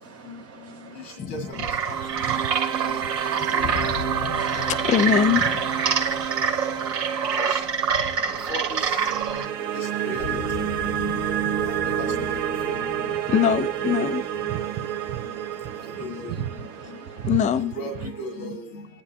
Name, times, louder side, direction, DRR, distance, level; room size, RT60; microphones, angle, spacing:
voice 1, 0.0-1.1 2.0-3.5 3.9-4.5 6.0-7.4 8.2-8.5 9.6-9.7 11.3-11.7 13.2-13.3 14.5-16.0 16.8-17.4, right 10 dB, 30° right, 0.8 m, -40 dB
voice 2, 1.0-2.0 7.4-7.6 8.5-9.0 9.7-10.7 11.0-11.2 11.7-12.9 14.9-15.0 16.0-16.3 17.7-18.8, equal, 90° left, 1.8 m, -36 dB
sound 1, 1.2-18.3, right 10 dB, 55° right, 1.4 m, -30 dB
sound 2, 1.5-9.5, right 6 dB, 90° right, 2.1 m, -26 dB
voice 3, 3.4-4.0 4.5-5.7 13.3-14.5 16.8-16.9 17.2-17.7, left 8 dB, 15° left, 0.4 m, -24 dB
sound 3, 3.6-8.5 10.2-15.8, left 5 dB, 70° left, 1.0 m, -38 dB
27.0 x 9.8 x 2.8 m
hypercardioid pair, 95°, 46 cm